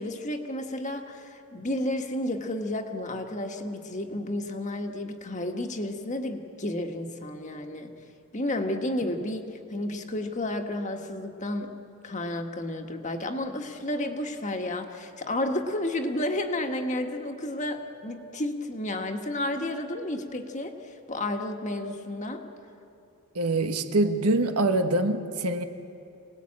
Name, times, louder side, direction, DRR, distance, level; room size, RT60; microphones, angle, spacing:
voice 1, 0.0-7.9 8.3-11.7 12.0-20.8 21.1-22.4, left 1 dB, 35° left, 4 dB, 1.6 m, -31 dB
voice 2, 23.3-25.6, right 2 dB, 85° right, 7 dB, 1.5 m, -24 dB
27.0 x 19.0 x 8.7 m, 2.6 s
head